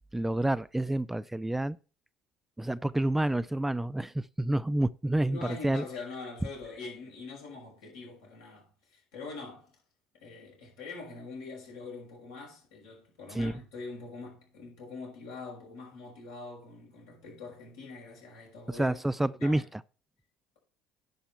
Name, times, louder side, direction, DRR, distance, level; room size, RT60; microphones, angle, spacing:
voice 1, 0.1-1.8 2.6-5.8 13.3-13.5 18.7-19.8, right 1 dB, 10° right, 0.4 m, -29 dB
voice 2, 5.2-9.7 10.1-19.0 19.2-19.7, left 4 dB, 80° left, 6.0 m, -44 dB
10.0 x 5.6 x 5.6 m
hypercardioid pair, 65°, 3 cm